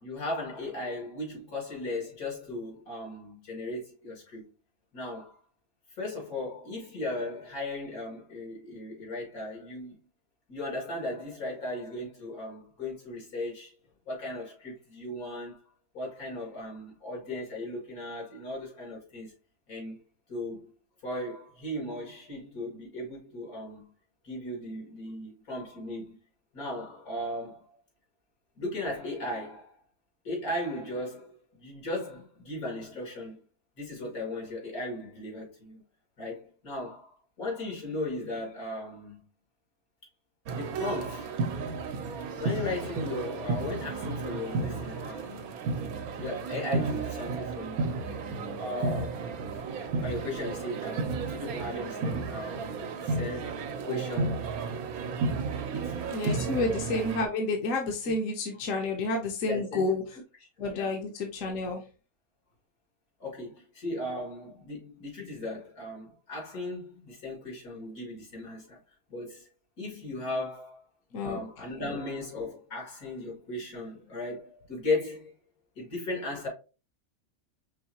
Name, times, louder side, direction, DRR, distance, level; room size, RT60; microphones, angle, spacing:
voice 1, 0.0-4.4 4.9-5.4 6.0-10.0 10.5-13.7 14.1-15.6 15.9-19.3 19.7-20.0 20.3-20.7 21.0-23.9 24.2-26.2 26.5-27.8 28.6-29.7 30.2-33.4 33.8-35.8 36.2-39.2 40.5-41.4 42.4-45.5 46.2-49.3 49.8-54.4 55.7-56.6 58.0-58.2 59.4-60.2 60.7-60.9 63.2-68.8 69.1-69.5 69.8-70.8 71.2-75.3 75.8-76.5, left 2 dB, 85° left, 2.7 m, -37 dB
sound 1, 40.5-57.3, right 4 dB, 80° right, 1.2 m, -33 dB
voice 2, 56.1-60.0 60.6-61.8 71.1-71.4 71.8-72.0, left 3 dB, 65° left, 1.2 m, -30 dB
5.5 x 3.1 x 2.8 m
omnidirectional pair, 1.5 m